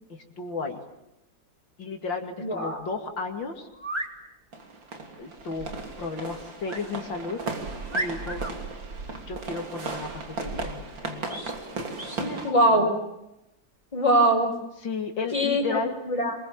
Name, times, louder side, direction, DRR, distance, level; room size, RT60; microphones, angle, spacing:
voice 1, 0.1-0.8 1.8-3.7 5.2-5.7 6.0-7.4 7.9-8.4 9.3-11.5 12.2-13.0 14.8-15.9, left 4 dB, 85° left, 4 dB, 3.3 m, -33 dB
voice 2, 2.4-2.8 12.4-12.9 13.9-14.5 15.3-16.4, right 1 dB, 15° left, 1 dB, 5.7 m, -22 dB
sound 1, 3.7-4.1 6.7-6.9 7.4-7.5 7.9-8.5 11.3-11.6 12.0-12.2, right 1 dB, 15° right, 2.7 m, -33 dB
sound 2, 4.5-12.5, right 3 dB, 85° right, 3.9 m, -36 dB
26.0 x 22.5 x 8.8 m, 0.88 s
omnidirectional pair, 2.0 m